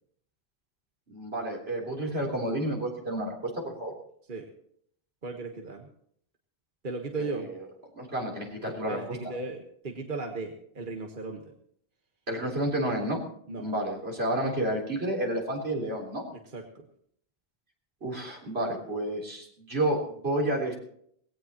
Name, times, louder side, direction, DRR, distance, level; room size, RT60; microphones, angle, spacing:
voice 1, 1.1-3.9 7.2-7.4 7.9-9.2 12.3-13.2 13.6-16.3 18.0-20.8, right 1 dB, 80° right, -1 dB, 3.9 m, -30 dB
voice 2, 5.2-5.9 6.8-7.5 8.9-11.5 13.5-13.7 16.3-16.8, right 3 dB, 55° right, 2 dB, 1.5 m, -36 dB
19.0 x 17.0 x 3.0 m, 0.66 s
omnidirectional pair, 1.1 m